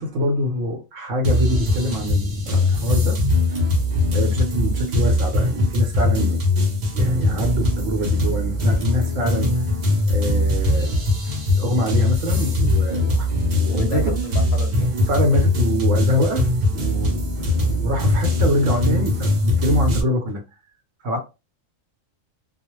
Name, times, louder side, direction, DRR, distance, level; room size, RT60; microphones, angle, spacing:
voice 1, 0.0-3.2 3.6-3.8 4.1-6.4 6.9-9.6 10.1-10.9 11.5-14.1 15.0-20.4 21.0-21.2, equal, 75° right, 1.1 m, -25 dB
sound 1, 1.2-20.0, left 2 dB, 45° right, 0.6 m, -21 dB
voice 2, 13.6-14.9, left 4 dB, 45° left, 0.7 m, -33 dB
2.3 x 2.0 x 3.0 m
omnidirectional pair, 1.4 m